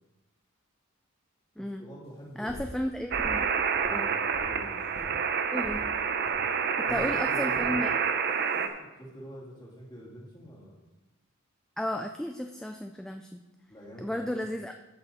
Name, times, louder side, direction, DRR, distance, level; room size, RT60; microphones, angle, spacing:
voice 1, 1.6-4.1 4.4-4.8 6.8-7.9 8.5-10.8 13.7-14.4, equal, 20° left, -3 dB, 2.3 m, -46 dB
voice 2, 2.4-3.5 3.9-4.1 5.5-5.9 6.8-7.9 11.8-13.4 14.0-14.7, left 1 dB, 5° left, 5 dB, 0.3 m, -34 dB
sound 1, 2.5-2.7 3.1-3.4 3.7-4.5 4.9-5.1 5.6-5.8 6.2-6.4 6.9-7.1 7.5-7.7 8.3-8.6, equal, 50° left, 1.9 m, -43 dB
sound 2, 3.1-8.7, right 6 dB, 50° right, 0.6 m, -28 dB
13.5 x 5.6 x 4.1 m, 1.0 s
head